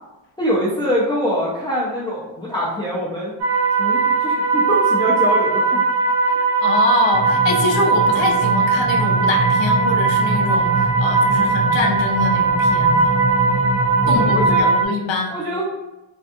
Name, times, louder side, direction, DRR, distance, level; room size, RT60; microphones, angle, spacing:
voice 1, 0.4-3.3 3.8-5.8 14.0-14.7 15.3-15.6, equal, 10° left, -7 dB, 0.4 m, -24 dB
sound 1, 3.4-14.9, right 4 dB, 35° right, 0.9 m, -18 dB
voice 2, 6.3-13.1 14.1-15.4, left 3 dB, 65° left, 2 dB, 0.6 m, -25 dB
sound 2, 7.1-14.6, right 2 dB, 15° right, 1.2 m, -25 dB
2.6 x 2.3 x 2.4 m, 1.0 s
cardioid pair, 105°, 48 cm